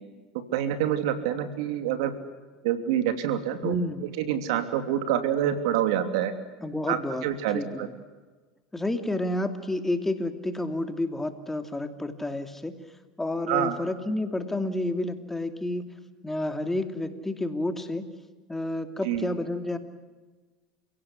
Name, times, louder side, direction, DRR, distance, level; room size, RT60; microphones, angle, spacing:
voice 1, 0.5-2.1 2.6-3.8 4.2-6.3 6.9-7.9 13.5-13.8 19.0-19.3, right 10 dB, 75° right, 9 dB, 3.0 m, -26 dB
voice 2, 3.6-4.0 6.6-7.2 7.5-7.8 8.7-12.8 13.2-15.9 16.2-18.1 18.5-19.8, left 1 dB, 10° left, 8 dB, 2.7 m, -30 dB
30.0 x 17.0 x 9.8 m, 1.3 s
supercardioid pair, 95°, 3 cm